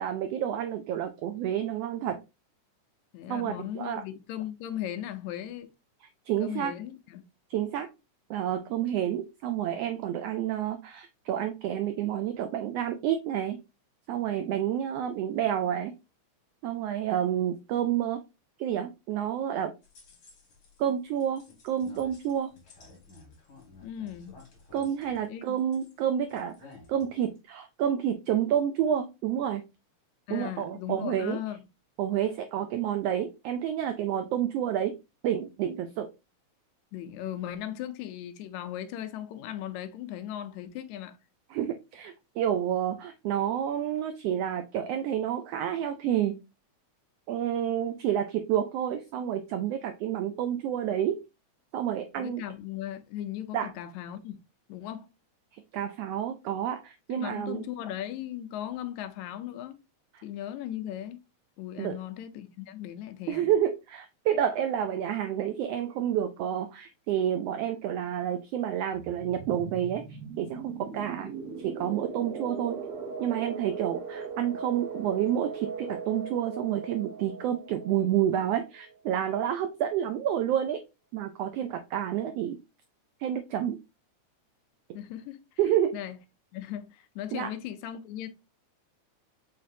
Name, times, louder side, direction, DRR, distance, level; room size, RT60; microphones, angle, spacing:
voice 1, 0.0-2.2 3.3-4.0 6.3-6.7 7.5-7.9 8.3-13.6 14.1-15.9 16.6-18.2 18.6-19.7 20.8-22.5 24.7-26.5 26.9-29.6 30.3-31.4 32.0-35.0 35.2-36.1 41.5-46.4 47.3-51.2 51.7-52.4 53.5-53.7 55.5-57.6 61.8-62.0 63.3-70.0 70.4-71.3 71.6-72.8 73.2-80.8 81.1-82.6 83.2-83.8 85.6-86.0 87.3-87.5, right 10 dB, 85° right, 1.4 m, -29 dB
voice 2, 3.1-5.7 6.4-7.2 23.8-24.4 25.3-25.6 30.3-31.6 36.9-41.2 52.2-54.4 54.7-55.1 57.1-59.8 60.2-61.2 61.6-63.5 84.9-85.4 85.9-86.2 86.5-88.3, left 11 dB, 85° left, 1.9 m, -37 dB
sound 1, 19.8-20.8 21.2-26.0 26.3-27.4, left 3 dB, 50° left, 2.5 m, -53 dB
sound 2, 68.9-79.4, right 5 dB, 65° right, 1.6 m, -39 dB
5.7 x 3.3 x 2.6 m
omnidirectional pair, 3.3 m